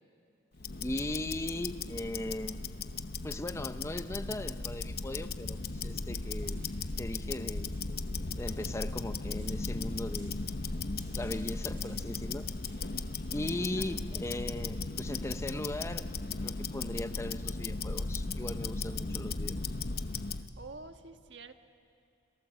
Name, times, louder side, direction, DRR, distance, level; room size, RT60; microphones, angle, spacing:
Tick-tock, 0.6-20.5, left 3 dB, 55° left, 0.9 m, -36 dB
voice 1, 0.8-2.6 3.2-6.6 7.0-7.7 8.4-10.4 11.2-12.5 13.3-16.1 16.3-19.6, left 1 dB, 15° left, 10 dB, 0.7 m, -38 dB
sound 1, 4.4-18.4, right 3 dB, 50° right, 6.7 m, -65 dB
voice 2, 20.1-21.5, right 3 dB, 70° right, 7 dB, 1.4 m, -49 dB
29.0 x 25.0 x 7.8 m, 2.4 s
head